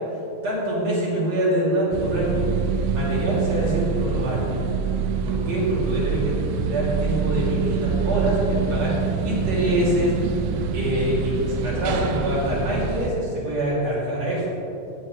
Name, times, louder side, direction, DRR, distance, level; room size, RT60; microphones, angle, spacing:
voice 1, 0.4-2.5 2.9-4.5 5.2-8.9 9.2-10.2 10.7-14.5, right 1 dB, 40° right, -7 dB, 3.9 m, -25 dB
sound 1, 1.9-13.1, right 6 dB, 80° right, 2.7 m, -25 dB
18.0 x 9.3 x 3.4 m, 2.8 s
omnidirectional pair, 5.2 m